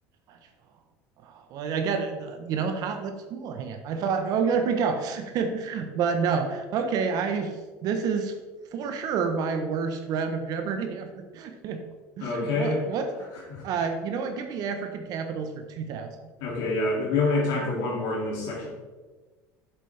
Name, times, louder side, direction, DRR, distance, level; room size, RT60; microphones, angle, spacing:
voice 1, 1.2-7.5 7.8-8.3 8.7-11.8 12.2-13.1 13.6-16.1, right 5 dB, 55° right, 6 dB, 0.8 m, -29 dB
voice 2, 12.2-12.8 13.5-13.7 16.4-18.7, left 3 dB, 65° left, -4 dB, 2.2 m, -27 dB
7.4 x 7.0 x 3.3 m, 1.3 s
supercardioid pair, 115°, 8 cm